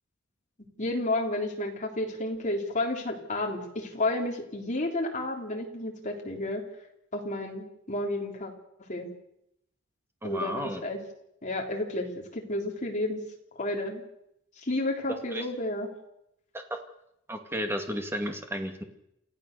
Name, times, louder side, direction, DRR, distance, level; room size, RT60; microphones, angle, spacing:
voice 1, 0.8-6.6 7.1-8.5 8.9-9.1 10.2-11.0 11.4-13.2 13.6-14.0 14.6-15.9, left 2 dB, 35° left, 1 dB, 3.6 m, -31 dB
voice 2, 10.2-10.8 15.1-15.4 16.5-16.8 17.3-18.8, equal, 10° right, 5 dB, 2.2 m, -33 dB
28.5 x 14.5 x 6.8 m, 0.80 s
head